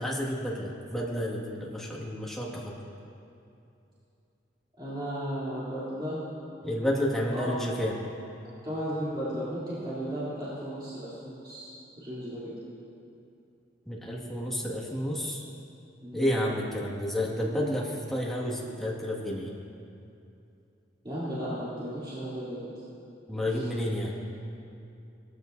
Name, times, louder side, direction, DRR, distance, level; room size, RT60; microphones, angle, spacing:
voice 1, 0.0-2.7 6.6-8.0 13.9-15.4 16.1-19.5 23.3-24.1, equal, ahead, -5 dB, 1.9 m, -30 dB
voice 2, 4.8-6.2 7.3-7.8 8.6-11.7 12.0-12.5 16.0-16.3 21.0-22.6 23.5-23.7, equal, 25° right, -12 dB, 3.2 m, -35 dB
19.0 x 13.5 x 2.7 m, 2.7 s
head